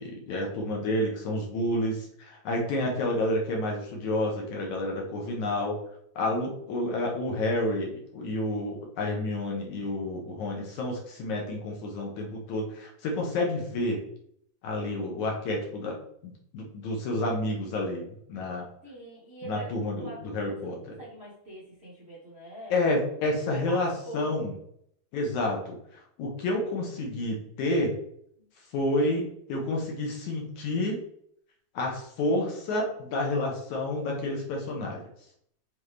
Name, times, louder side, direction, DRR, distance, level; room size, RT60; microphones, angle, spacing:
voice 1, 0.0-5.8 6.2-14.0 14.6-16.0 16.2-18.7 19.4-20.9 22.7-24.5 25.1-25.8 26.2-28.0 28.7-31.0 31.7-35.0, left 1 dB, 65° left, 0 dB, 2.2 m, -29 dB
voice 2, 18.8-22.7 23.4-24.3, right 1 dB, 55° right, -7 dB, 0.7 m, -44 dB
7.2 x 4.1 x 3.3 m, 0.68 s
omnidirectional pair, 4.1 m